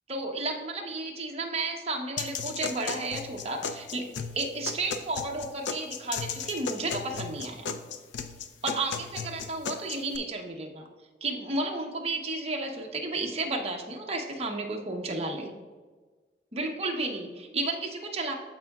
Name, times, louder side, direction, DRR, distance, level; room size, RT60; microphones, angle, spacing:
voice 1, 0.1-4.1 4.3-7.7 8.6-10.9 11.2-15.5 16.5-18.3, right 2 dB, 35° right, 1 dB, 0.9 m, -32 dB
sound 1, 2.2-10.2, left 5 dB, 90° left, 0.5 m, -36 dB
13.0 x 4.6 x 2.4 m, 1.4 s
head